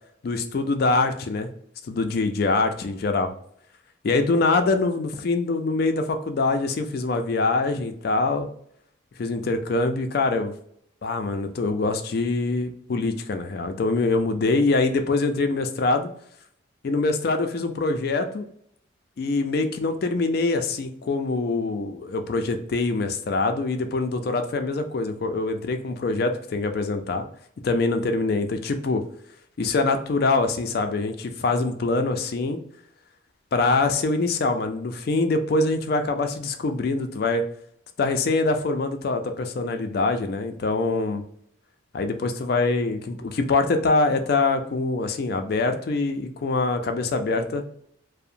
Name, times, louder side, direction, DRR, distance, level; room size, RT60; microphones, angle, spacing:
voice 1, 0.2-1.5 1.9-3.3 4.0-8.5 9.2-10.5 11.0-16.1 16.8-18.4 19.2-27.2 27.6-29.0 29.6-32.6 33.5-37.4 38.0-41.2 41.9-47.6, left 3 dB, 50° left, 6 dB, 0.3 m, -24 dB
2.7 x 2.0 x 2.5 m, 0.67 s
head